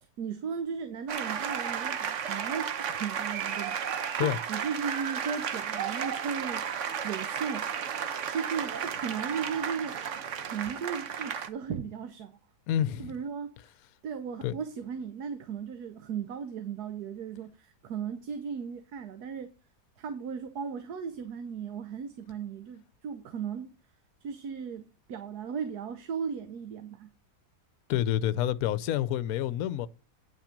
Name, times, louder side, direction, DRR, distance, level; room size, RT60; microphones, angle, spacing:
voice 1, 0.2-6.7 7.0-7.7 8.3-10.1 10.4-12.4 13.0-13.5 14.0-19.5 20.0-23.7 24.2-27.1, right 6 dB, 75° right, 1.4 m, -36 dB
sound 1, 1.1-11.5, right 8 dB, 55° right, 1.1 m, -33 dB
voice 2, 12.7-13.1 14.4-14.6 27.9-29.9, left 11 dB, 70° left, 1.0 m, -28 dB
9.4 x 5.9 x 5.2 m
omnidirectional pair, 1.7 m